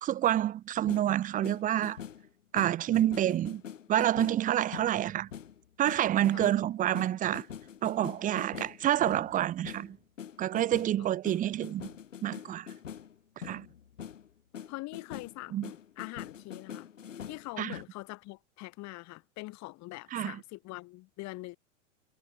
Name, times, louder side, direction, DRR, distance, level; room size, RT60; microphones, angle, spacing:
voice 1, 0.0-2.0 2.5-3.6 3.9-5.3 5.8-7.5 7.8-10.0 10.4-11.9 12.2-12.7 13.4-13.7 15.5-15.7 17.6-17.8 20.1-20.4, right 12 dB, 20° right, 0.5 m, -28 dB
sound 1, 0.7-2.3 2.6-14.3 14.5-17.9, left 8 dB, 85° left, 7.6 m, -45 dB
voice 2, 14.7-16.9 17.3-21.6, left 21 dB, 50° left, 4.7 m, -43 dB
hypercardioid pair, 100°, 37 cm